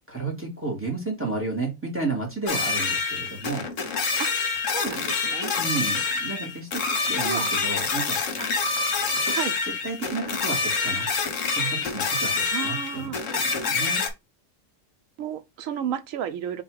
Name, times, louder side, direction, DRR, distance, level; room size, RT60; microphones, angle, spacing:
voice 1, 0.1-3.7 5.5-8.2 9.1-9.3 9.8-11.1 11.5-14.0, right 3 dB, 10° right, 1.6 m, -32 dB
sound 1, 2.5-14.1, left 4 dB, 70° left, 1.2 m, -26 dB
voice 2, 4.7-5.5 7.2-7.6 8.4-8.5 9.3-9.6 12.5-13.2 15.2-16.6, right 9 dB, 85° right, 1.0 m, -32 dB
4.0 x 2.9 x 4.7 m
omnidirectional pair, 1.3 m